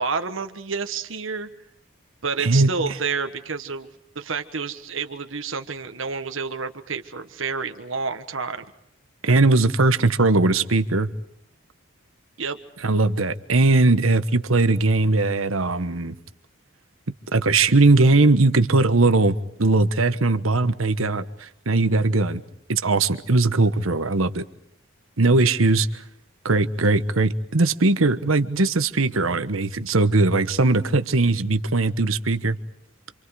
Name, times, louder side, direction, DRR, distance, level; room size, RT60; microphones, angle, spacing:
voice 1, 0.0-1.5 2.2-3.9 4.1-8.6 12.4-12.6, right 5 dB, 70° right, 7 dB, 1.4 m, -29 dB
voice 2, 2.4-2.7 9.2-11.1 12.8-16.1 17.3-22.4 22.7-24.4 25.2-25.9 26.4-32.6, right 3 dB, 90° right, 11 dB, 1.2 m, -19 dB
29.0 x 26.5 x 4.9 m, 0.72 s
head